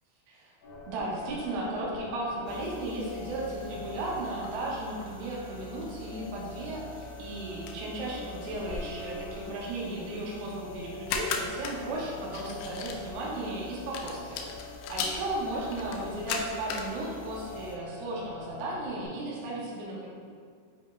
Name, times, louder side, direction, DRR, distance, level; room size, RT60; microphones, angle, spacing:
sound 1, 0.6-19.1, left 2 dB, 65° left, 3.4 m, -44 dB
voice 1, 0.9-14.5 14.9-20.1, right 1 dB, 85° right, -4 dB, 3.7 m, -35 dB
sound 2, 2.5-17.8, left 4 dB, 85° left, 2.8 m, -41 dB
10.0 x 4.9 x 2.3 m, 2.1 s
omnidirectional pair, 5.8 m